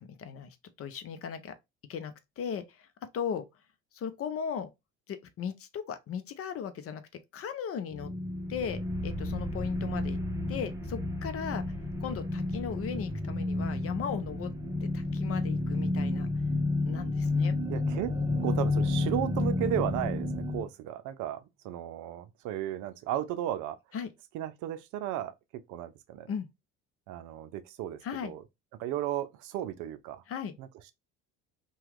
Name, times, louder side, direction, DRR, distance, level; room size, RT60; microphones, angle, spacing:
voice 1, 0.0-1.5 1.9-2.9 3.1-3.5 3.9-4.7 5.1-7.0 7.3-8.1 8.5-10.2 10.5-11.6 12.0-14.5 14.8-16.3 16.8-17.6 23.9-24.1 26.3-26.5 28.0-28.3 30.3-30.6, left 7 dB, 45° left, 0.6 m, -37 dB
sound 1, 7.9-20.6, left 2 dB, 10° right, 0.7 m, -31 dB
voice 2, 17.7-18.1 18.4-23.8 24.3-25.3 25.7-26.3 27.1-28.4 28.8-30.2 30.6-30.7, right 11 dB, 65° right, 0.5 m, -34 dB
2.9 x 2.3 x 3.4 m
hypercardioid pair, 75°, 33 cm